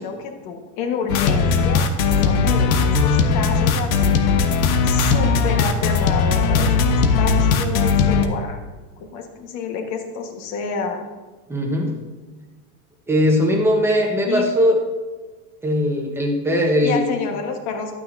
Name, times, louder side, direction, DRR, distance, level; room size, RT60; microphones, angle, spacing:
voice 1, 0.0-4.4 4.8-8.6 9.0-11.0 14.3-14.5 16.8-17.9, left 5 dB, 40° left, 4 dB, 1.4 m, -29 dB
sound 1, 1.1-8.3, left 5 dB, 80° left, 1.1 m, -18 dB
voice 2, 11.5-11.9 13.1-14.8 15.6-17.0, equal, 5° right, 1 dB, 1.1 m, -19 dB
12.0 x 9.0 x 2.6 m, 1.3 s
supercardioid pair, 145°, 41 cm